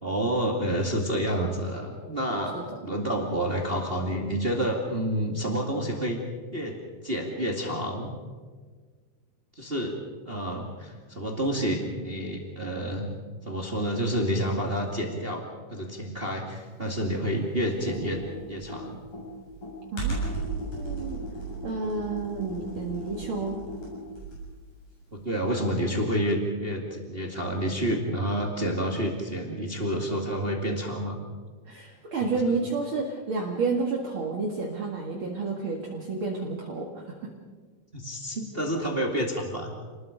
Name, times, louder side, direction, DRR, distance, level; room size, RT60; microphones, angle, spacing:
voice 1, 0.0-2.6 2.8-6.2 6.5-6.8 7.0-8.1 9.5-10.0 10.2-13.1 13.4-15.4 15.7-19.0 25.1-31.2 32.2-32.6 37.9-39.8, equal, 20° right, 1 dB, 1.5 m, -29 dB
Computer keyboard, 17.7-24.6, right 2 dB, 55° left, 9.0 m, -35 dB
voice 2, 19.9-21.2 21.6-23.6 31.7-37.3, right 4 dB, 45° right, -1 dB, 1.9 m, -30 dB
28.5 x 20.5 x 5.2 m, 1.5 s
omnidirectional pair, 4.6 m